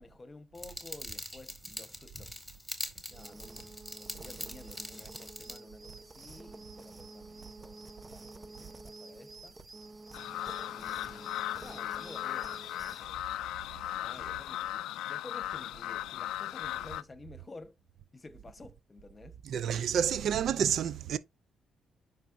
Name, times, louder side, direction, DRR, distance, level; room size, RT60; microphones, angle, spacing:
voice 1, 0.0-2.6 3.1-9.6 10.6-13.2 13.7-17.8 18.1-19.4, left 3 dB, 30° left, 1.1 m, -52 dB
sound 1, 0.5-5.6, left 1 dB, ahead, 2.0 m, -43 dB
sound 2, 3.1-13.1, right 3 dB, 30° right, 0.8 m, -49 dB
sound 3, 10.1-17.0, left 14 dB, 90° left, 0.3 m, -37 dB
voice 2, 19.4-21.2, right 8 dB, 70° right, 0.5 m, -29 dB
9.0 x 5.7 x 2.6 m
cardioid pair, 80°, 0 cm